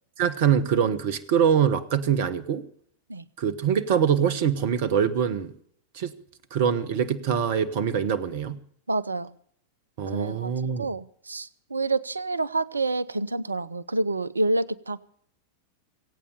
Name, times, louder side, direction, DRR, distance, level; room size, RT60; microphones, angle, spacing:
voice 1, 0.2-2.6 3.4-5.5 5.9-6.1 6.5-8.6 10.0-10.9, right 8 dB, 50° right, 17 dB, 1.3 m, -24 dB
voice 2, 8.9-9.3 10.1-15.0, right 2 dB, 80° right, 21 dB, 0.7 m, -28 dB
23.5 x 8.8 x 6.8 m, 0.63 s
figure-of-eight pair, 90°, 0 cm